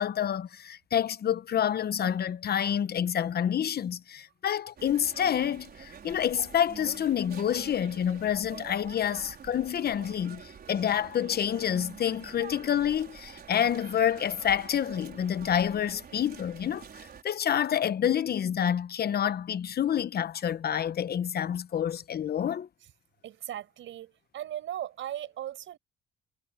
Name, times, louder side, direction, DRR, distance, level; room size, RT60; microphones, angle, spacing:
voice 1, 0.0-10.4 10.7-16.8 17.2-22.7, left 9 dB, 55° left, 0.9 m, -28 dB
sound 1, 4.8-17.2, right 7 dB, 50° right, 5.1 m, -47 dB
voice 2, 23.2-25.8, right 12 dB, 75° right, 5.5 m, -38 dB
cardioid pair, 90°, 20 cm